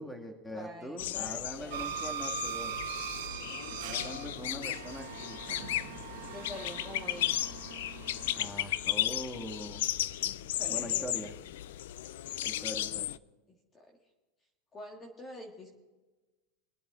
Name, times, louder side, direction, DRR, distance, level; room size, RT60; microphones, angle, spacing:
voice 1, 0.0-2.8 3.8-5.7 8.4-9.8 10.7-11.3 12.4-13.1, equal, 5° left, 4 dB, 2.1 m, -42 dB
voice 2, 0.5-2.0 3.5-3.8 6.2-7.4 10.2-11.3 13.5-14.0 14.7-15.7, left 1 dB, 20° left, 2 dB, 1.8 m, -47 dB
sound 1, 1.0-13.2, left 13 dB, 75° left, 0.4 m, -35 dB
sound 2, 1.7-8.5, right 8 dB, 70° right, 1.4 m, -41 dB
23.5 x 8.5 x 3.8 m, 1.2 s
supercardioid pair, 125°, 0 cm